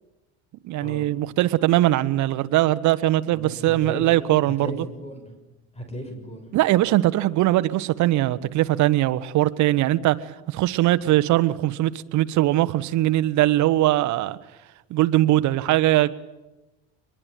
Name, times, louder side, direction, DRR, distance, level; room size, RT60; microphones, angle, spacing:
voice 1, 0.6-4.7 6.5-14.4 14.9-16.1, right 15 dB, 60° right, 12 dB, 1.4 m, -21 dB
voice 2, 3.3-5.4 5.7-6.5, equal, 20° left, 6 dB, 6.1 m, -36 dB
25.0 x 22.0 x 9.3 m, 1.0 s
cardioid pair, 110°, 32 cm